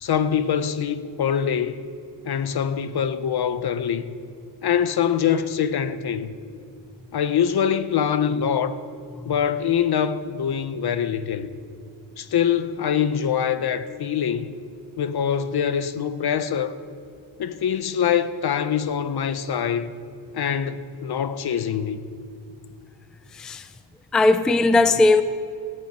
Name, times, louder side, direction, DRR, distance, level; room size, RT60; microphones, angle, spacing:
voice 1, 0.0-1.8 2.2-4.2 4.6-6.3 7.1-8.8 9.3-11.6 12.2-14.5 15.0-16.7 17.4-19.9 20.3-22.1, left 8 dB, 60° left, 0.8 m, -24 dB
voice 2, 23.3-23.6 24.1-25.2, left 3 dB, ahead, 0.4 m, -18 dB
14.5 x 8.9 x 9.4 m
wide cardioid pair, 150°, 44 cm